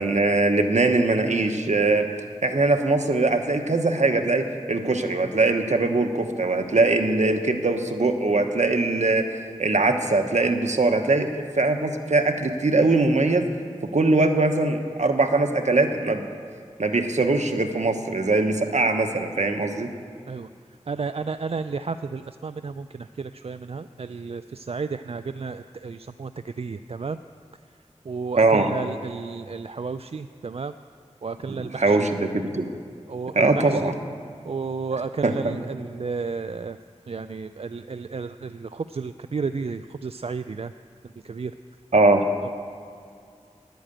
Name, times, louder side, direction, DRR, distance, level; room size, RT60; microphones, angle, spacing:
voice 1, 0.0-2.1 2.4-9.3 9.6-13.5 13.8-16.3 16.8-19.9 28.4-28.7 31.5-32.7 33.3-33.9 35.2-35.6 41.9-42.2, right 2 dB, 70° right, 5 dB, 1.1 m, -21 dB
voice 2, 20.9-27.2 28.1-30.7 31.2-32.1 33.1-33.9 34.4-36.8 37.1-40.7 41.2-41.5 42.4-42.5, right 4 dB, 55° right, 11 dB, 0.4 m, -32 dB
11.0 x 9.2 x 9.0 m, 2.3 s
wide cardioid pair, 45°, 12 cm